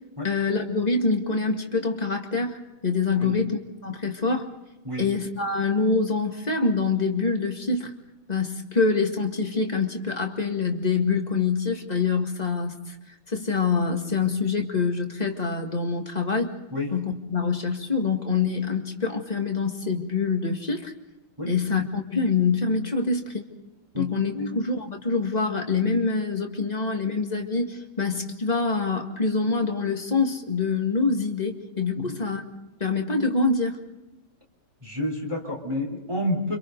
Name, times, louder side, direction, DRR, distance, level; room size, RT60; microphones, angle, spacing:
voice 1, 0.2-4.5 5.0-7.9 8.3-13.0 13.3-16.5 16.9-20.9 21.4-23.5 24.0-32.4 32.8-33.8, left 4 dB, 20° left, 3 dB, 1.9 m, -25 dB
voice 2, 34.8-36.6, left 1 dB, 15° right, 0 dB, 3.7 m, -29 dB
30.0 x 26.5 x 4.0 m, 0.97 s
omnidirectional pair, 2.3 m